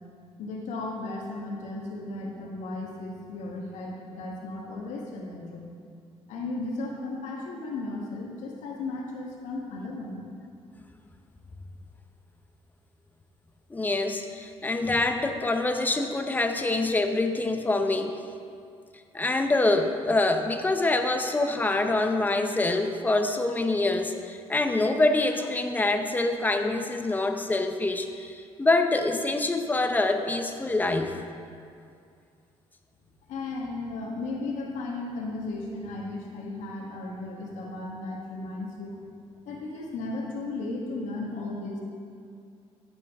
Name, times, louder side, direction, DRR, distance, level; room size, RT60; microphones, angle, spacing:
voice 1, 0.4-5.7 6.3-10.3 33.3-39.0 39.4-41.8, left 2 dB, 90° left, -2 dB, 1.4 m, -35 dB
voice 2, 13.7-18.2 19.1-31.1, left 2 dB, 15° left, 5 dB, 0.8 m, -25 dB
14.5 x 7.1 x 3.6 m, 2.3 s
cardioid pair, 115°, 12 cm